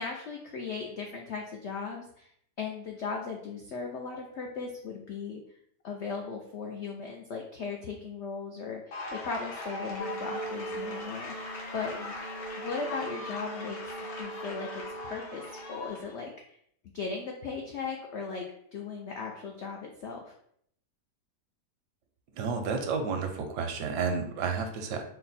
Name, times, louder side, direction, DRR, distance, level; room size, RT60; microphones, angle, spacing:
voice 1, 0.0-2.3 2.6-5.4 5.8-12.1 12.5-13.9 14.2-16.6 16.9-20.3, left 5 dB, 85° left, 1 dB, 0.6 m, -37 dB
sound 1, 8.9-16.1, left 2 dB, 60° left, 1.4 m, -40 dB
sound 2, 10.0-15.9, right 2 dB, 30° left, 0.6 m, -41 dB
voice 2, 22.4-25.0, right 5 dB, 80° right, 5 dB, 1.2 m, -31 dB
4.2 x 2.2 x 4.0 m, 0.69 s
omnidirectional pair, 1.8 m